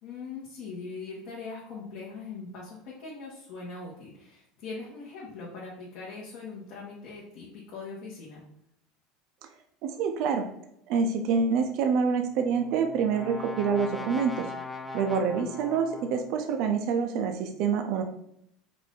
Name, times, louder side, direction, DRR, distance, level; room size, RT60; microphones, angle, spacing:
voice 1, 0.0-8.4, left 4 dB, 55° left, -6 dB, 1.4 m, -41 dB
voice 2, 9.8-10.5 10.9-14.5 14.9-18.0, right 6 dB, 55° right, 6 dB, 0.5 m, -26 dB
Brass instrument, 12.3-16.4, left 2 dB, 10° left, 0.3 m, -40 dB
5.0 x 2.6 x 3.5 m, 0.76 s
cardioid pair, 150°, 0 cm